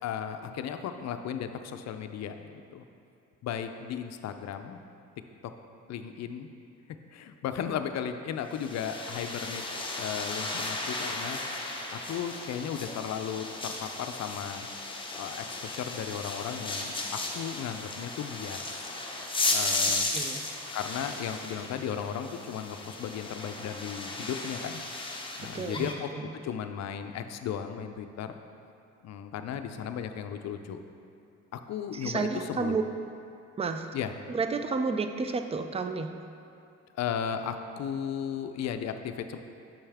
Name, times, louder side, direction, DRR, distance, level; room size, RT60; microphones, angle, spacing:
voice 1, 0.0-2.8 3.4-4.8 5.9-6.5 7.1-9.6 10.0-11.4 11.9-14.7 15.2-18.9 19.5-20.1 20.7-24.8 25.4-26.1 26.4-28.4 29.0-30.8 31.5-32.8 33.9-34.1 36.9-39.4, left 8 dB, 60° left, 8 dB, 0.5 m, -35 dB
sound 1, 8.5-25.9, left 2 dB, 15° left, 0.8 m, -35 dB
voice 2, 25.5-26.2 31.9-32.8 33.6-33.9 34.3-36.2, right 4 dB, 20° right, 7 dB, 0.4 m, -31 dB
7.1 x 5.5 x 3.5 m, 2.6 s
cardioid pair, 90°, 30 cm